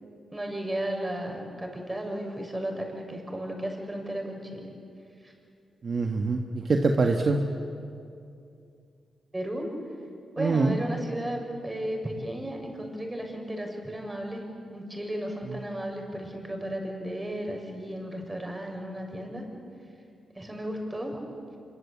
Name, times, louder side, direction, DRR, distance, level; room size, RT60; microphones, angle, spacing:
voice 1, 0.3-4.7 5.2-5.3 6.7-6.8 9.3-9.7 10.3-14.4 14.7-19.5 20.4-21.2, right 1 dB, 20° right, 2 dB, 7.0 m, -34 dB
voice 2, 5.8-7.4 10.4-10.8 15.5-15.6, right 3 dB, 55° right, 3 dB, 1.6 m, -24 dB
25.5 x 24.0 x 8.5 m, 2.5 s
supercardioid pair, 55°, 0 cm